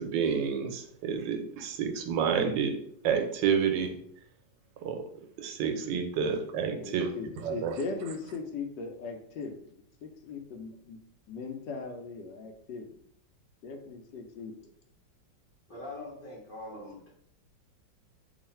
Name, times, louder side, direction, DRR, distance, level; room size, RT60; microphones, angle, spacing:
voice 1, 0.0-2.7 3.0-3.9 4.8-5.0 5.4-7.1 7.4-7.7, right 7 dB, 80° right, 5 dB, 1.2 m, -29 dB
voice 2, 6.8-11.0 11.3-13.0 13.6-14.5, left 4 dB, 75° left, 4 dB, 1.3 m, -39 dB
voice 3, 15.7-17.1, left 2 dB, 40° left, -5 dB, 0.8 m, -42 dB
3.1 x 2.4 x 4.2 m, 0.66 s
omnidirectional pair, 2.0 m